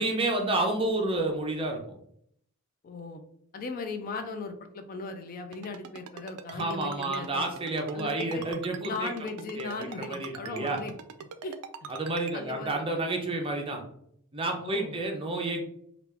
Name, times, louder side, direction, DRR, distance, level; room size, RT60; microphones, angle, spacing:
voice 1, 0.0-1.8 6.5-9.1 9.6-10.8 11.9-13.8 14.3-15.6, right 2 dB, 25° right, 2 dB, 0.5 m, -30 dB
voice 2, 2.8-3.2 3.5-7.4 7.9-8.5 8.8-10.9 11.4-11.6 12.3-12.7 14.6-15.0, left 3 dB, 40° left, 7 dB, 0.3 m, -37 dB
Ringtone, 5.5-12.3, right 7 dB, 85° right, 0.3 m, -42 dB
3.3 x 2.4 x 3.3 m, 0.69 s
head